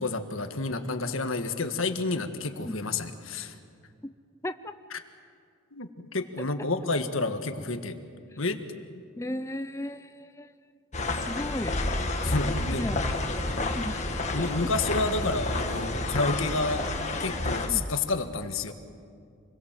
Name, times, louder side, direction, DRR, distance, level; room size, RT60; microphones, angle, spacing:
voice 1, 0.0-3.5 4.9-5.0 5.7-8.0 8.4-8.6 12.2-12.9 14.3-16.9 17.2-18.7, left 3 dB, 70° left, 7 dB, 1.7 m, -29 dB
voice 2, 4.4-4.7 6.6-6.7 9.2-10.5 11.3-11.8 12.7-13.1 13.7-14.7 17.7-17.9, left 1 dB, 15° left, 10 dB, 0.6 m, -35 dB
sound 1, 10.9-17.7, left 2 dB, 35° left, 1.7 m, -30 dB
28.0 x 22.0 x 7.6 m, 2.2 s
head